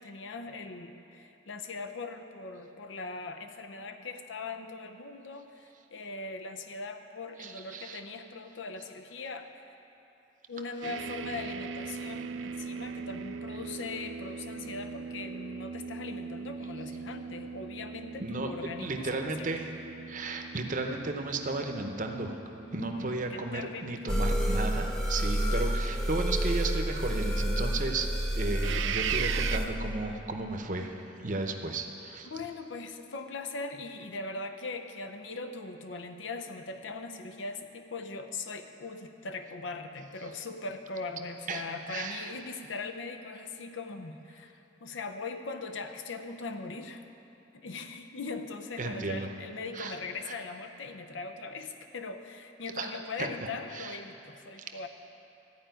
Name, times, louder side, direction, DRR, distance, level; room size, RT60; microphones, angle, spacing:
voice 1, 0.0-9.6 10.5-19.5 22.7-24.0 32.2-47.1 47.5-54.9, left 3 dB, 75° left, 6 dB, 0.7 m, -40 dB
voice 2, 7.4-8.0 18.2-18.5 18.8-19.7 20.1-22.4 22.7-28.1 28.4-32.3 41.5-41.6 41.9-42.3 48.8-49.3 49.7-49.9 52.8-52.9 53.2-53.3 53.7-54.0, right 3 dB, 40° right, 4 dB, 0.8 m, -34 dB
sound 1, 10.8-23.9 28.6-29.6, right 6 dB, 75° right, 0.4 m, -39 dB
sound 2, 24.1-29.6, equal, 5° left, 0.8 m, -29 dB
13.5 x 5.0 x 9.1 m, 2.9 s
head